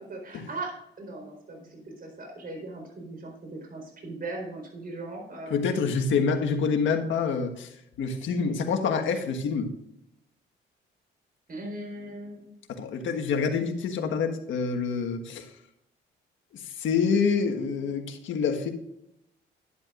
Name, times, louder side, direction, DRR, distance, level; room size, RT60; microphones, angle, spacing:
voice 1, 0.0-5.8 11.5-12.5, right 2 dB, 45° right, 3 dB, 4.2 m, -39 dB
voice 2, 5.5-7.7 8.0-9.7 12.7-15.5 16.5-18.7, left 5 dB, 75° left, 4 dB, 1.5 m, -27 dB
11.0 x 11.0 x 2.5 m, 0.80 s
cardioid pair, 90°, 20 cm